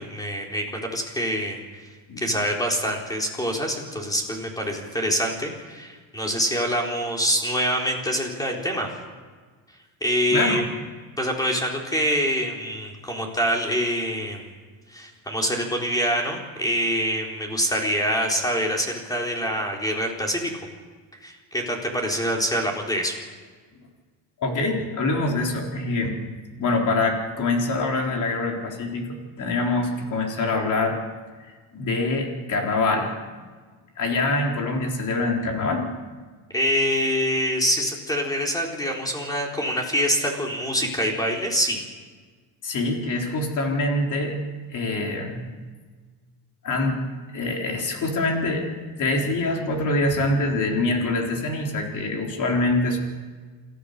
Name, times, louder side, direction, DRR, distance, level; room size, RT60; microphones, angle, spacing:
voice 1, 0.0-1.6 2.2-8.9 10.0-10.6 11.2-14.5 14.9-20.5 21.2-23.2 36.5-41.8, equal, 10° left, 0 dB, 3.9 m, -25 dB
voice 2, 10.3-10.6 24.4-26.1 26.6-31.0 31.7-33.1 34.0-35.9 42.6-44.4 44.7-45.5 46.6-47.0 47.3-53.0, left 2 dB, 45° left, 1 dB, 3.9 m, -24 dB
28.0 x 14.0 x 6.7 m, 1.5 s
cardioid pair, 130°, 44 cm